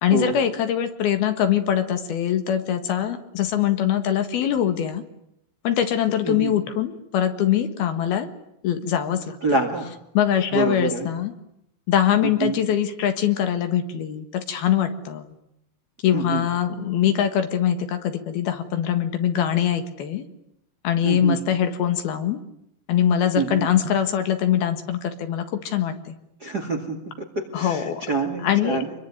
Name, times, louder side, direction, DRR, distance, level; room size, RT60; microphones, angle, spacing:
voice 1, 0.0-5.0 5.6-8.3 8.6-9.4 10.1-11.3 11.9-15.3 16.0-20.2 20.8-22.4 22.9-26.1 27.5-28.0 28.4-28.8, left 10 dB, 65° left, 8 dB, 3.4 m, -23 dB
voice 2, 9.4-10.0 10.5-11.1 12.2-12.6 16.1-16.4 21.0-21.4 23.3-23.7 26.4-28.9, right 3 dB, 30° right, 5 dB, 2.0 m, -26 dB
26.5 x 22.5 x 9.6 m, 0.79 s
omnidirectional pair, 5.0 m